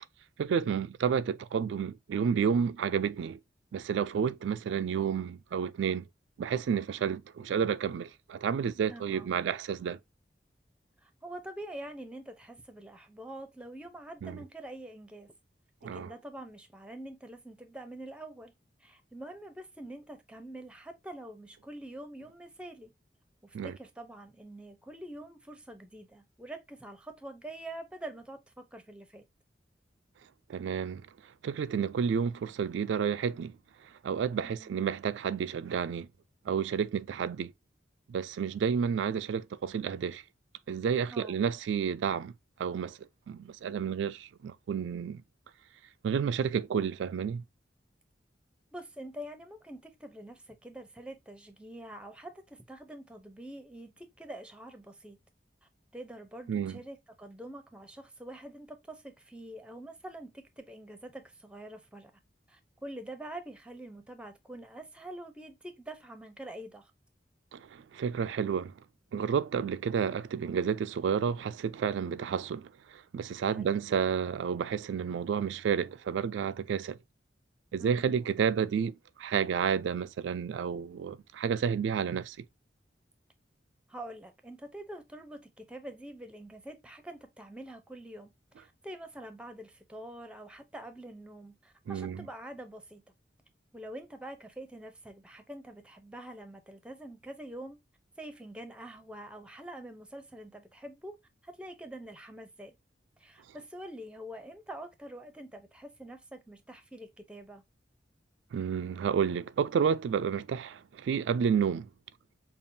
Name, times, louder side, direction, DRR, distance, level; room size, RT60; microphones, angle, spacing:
voice 1, 0.4-3.4 3.7-6.1 6.4-10.0 14.2-14.4 15.8-16.1 23.5-23.8 30.5-31.1 31.4-33.5 34.0-36.1 36.5-37.5 38.1-40.2 40.7-42.3 42.6-43.0 43.3-45.2 46.0-47.4 56.5-56.8 67.5-68.7 69.1-77.0 77.7-82.4 91.9-92.3 108.5-111.9, right 7 dB, 85° right, 0.3 m, -30 dB
voice 2, 8.9-9.3 11.0-15.3 15.9-18.5 18.8-22.9 23.4-29.2 34.4-34.8 41.1-41.4 48.7-55.2 55.9-62.1 62.5-66.9 73.5-73.8 77.8-78.2 83.9-93.0 93.7-97.8 98.2-101.2 101.4-102.8 103.2-107.6, right 1 dB, 5° right, 0.5 m, -45 dB
5.3 x 2.4 x 2.6 m
head